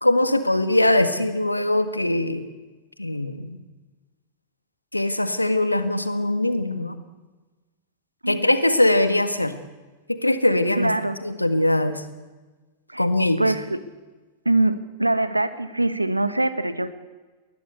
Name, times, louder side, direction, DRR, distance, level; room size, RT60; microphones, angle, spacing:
voice 1, 0.0-2.5 3.0-3.6 4.9-7.0 8.3-9.5 10.1-12.0 13.0-13.5, left 1 dB, 90° left, 11 dB, 1.7 m, -21 dB
voice 2, 10.8-11.1 12.9-13.1 13.4-13.8 14.4-16.9, right 2 dB, 90° right, 13 dB, 1.4 m, -23 dB
20.5 x 20.0 x 8.3 m, 1.2 s
figure-of-eight pair, 95°, 0 cm